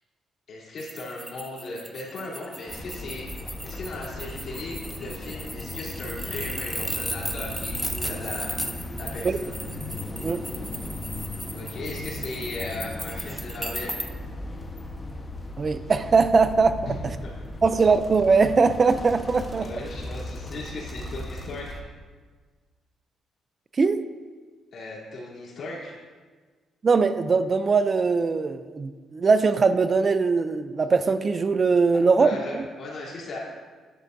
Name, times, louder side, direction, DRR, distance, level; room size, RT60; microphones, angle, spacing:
voice 1, 0.5-3.3 3.6-8.6 9.0-9.6 11.5-14.0 16.9-17.3 19.6-21.8 24.7-25.9 32.2-33.4, left 2 dB, 60° left, -5 dB, 3.2 m, -37 dB
sound 1, 0.8-14.1, equal, 5° right, 0.7 m, -36 dB
sound 2, 2.7-21.8, left 1 dB, 25° left, 1.1 m, -37 dB
voice 2, 15.6-16.9 17.6-19.7 23.8-24.0 26.8-32.6, right 4 dB, 40° right, 11 dB, 0.4 m, -21 dB
11.0 x 10.0 x 2.7 m, 1.5 s
cardioid pair, 90°, 0 cm